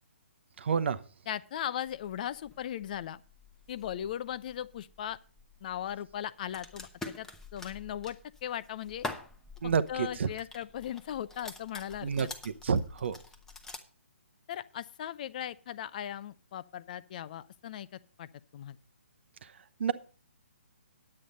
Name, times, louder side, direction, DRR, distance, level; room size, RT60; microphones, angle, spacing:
voice 1, 0.6-1.0 9.6-10.3 12.0-12.3 12.6-13.2 19.8-19.9, right 6 dB, 60° right, 0.9 m, -28 dB
voice 2, 1.3-3.2 3.7-5.2 5.6-6.9 7.2-7.3 7.5-9.1 9.6-12.3 14.5-18.8, left 10 dB, 40° left, 0.5 m, -38 dB
sound 1, 1.9-13.8, left 3 dB, 5° left, 0.9 m, -47 dB
9.9 x 8.6 x 5.3 m
hypercardioid pair, 145°, 7 cm